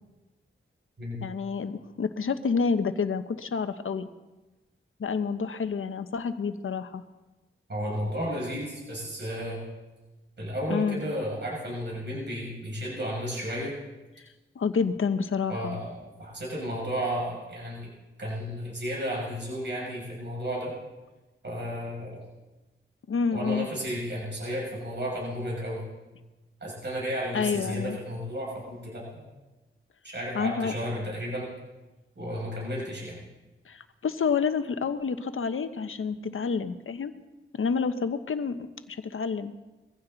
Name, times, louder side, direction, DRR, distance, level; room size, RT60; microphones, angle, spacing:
voice 1, 1.2-4.1 5.0-7.0 10.7-11.0 14.5-15.8 23.1-23.7 27.3-28.0 30.3-30.7 33.7-37.1 37.5-39.5, left 5 dB, 80° left, 10 dB, 1.0 m, -29 dB
voice 2, 7.7-9.6 10.4-13.7 15.5-17.9 18.2-20.7 21.4-22.2 23.3-25.8 26.6-29.2 30.0-31.5 32.2-33.2, equal, 60° right, -4 dB, 6.8 m, -33 dB
22.5 x 15.5 x 4.0 m, 1.1 s
cardioid pair, 60°, 21 cm